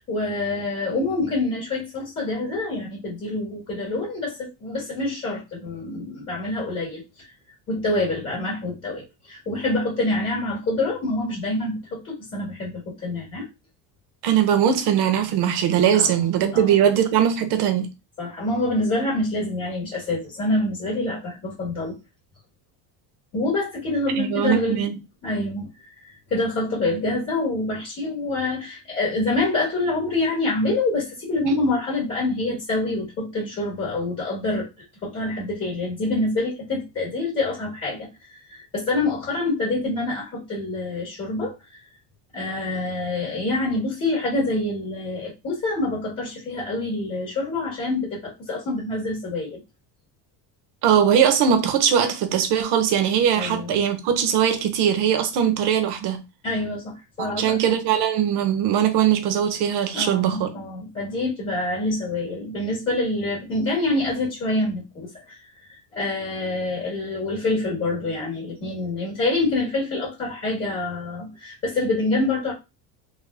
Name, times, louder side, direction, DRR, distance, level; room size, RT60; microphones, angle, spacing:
voice 1, 0.0-7.3 7.7-13.5 15.9-16.3 16.5-16.8 18.2-22.0 23.3-24.9 25.2-25.7 26.0-34.7 35.0-38.1 38.3-41.8 42.3-49.6 53.3-53.8 56.4-57.6 59.9-65.4 65.9-72.5, left 2 dB, 30° left, 1.8 m, -26 dB
voice 2, 14.2-17.9 24.2-24.9 50.8-56.2 57.2-60.5, right 9 dB, 65° right, 0.9 m, -20 dB
3.6 x 2.3 x 3.3 m
cardioid pair, 145°, 42 cm